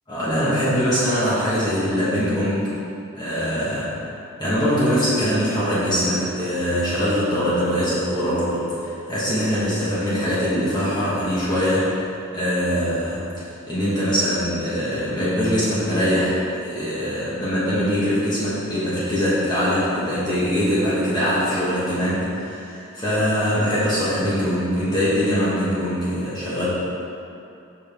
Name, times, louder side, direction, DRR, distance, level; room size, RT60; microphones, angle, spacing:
voice 1, 0.1-2.7 3.1-3.9 4.4-13.2 13.7-26.7, equal, 20° left, -11 dB, 1.4 m, -22 dB
6.7 x 5.3 x 3.6 m, 2.7 s
head